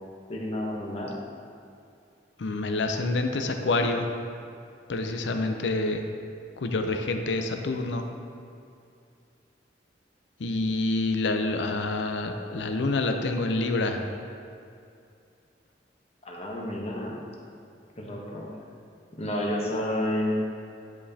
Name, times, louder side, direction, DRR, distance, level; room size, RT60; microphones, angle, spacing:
voice 1, 0.3-1.1 16.2-17.2 18.0-18.5 19.2-20.4, left 1 dB, 35° left, -2 dB, 1.0 m, -30 dB
voice 2, 2.4-4.1 4.9-6.1 6.6-8.0 10.4-14.0, left 2 dB, 80° left, 5 dB, 0.6 m, -27 dB
10.0 x 5.2 x 2.8 m, 2.5 s
head